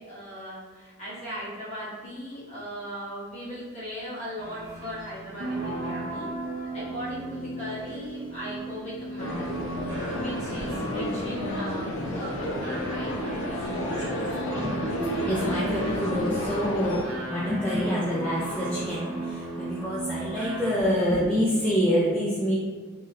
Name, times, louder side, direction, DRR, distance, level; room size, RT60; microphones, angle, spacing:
voice 1, 0.0-9.5 10.1-13.1 13.5-14.0, equal, 30° left, -10 dB, 1.3 m, -38 dB
sound 1, 4.4-21.1, right 1 dB, 60° right, 0.7 m, -35 dB
sound 2, 9.2-17.0, left 1 dB, 70° left, 0.5 m, -32 dB
voice 2, 15.0-22.6, equal, 5° left, -9 dB, 0.4 m, -27 dB
3.3 x 2.7 x 2.4 m, 1.5 s
head